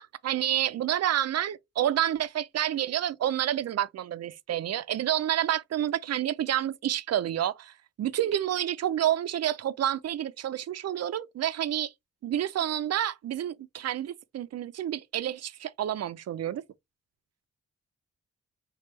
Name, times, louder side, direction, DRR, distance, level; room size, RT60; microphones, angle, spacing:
voice 1, 0.0-7.7 8.0-11.9 12.2-16.6, right 11 dB, 60° right, 0.5 m, -29 dB
3.4 x 2.4 x 3.2 m
cardioid pair, 70°, 29 cm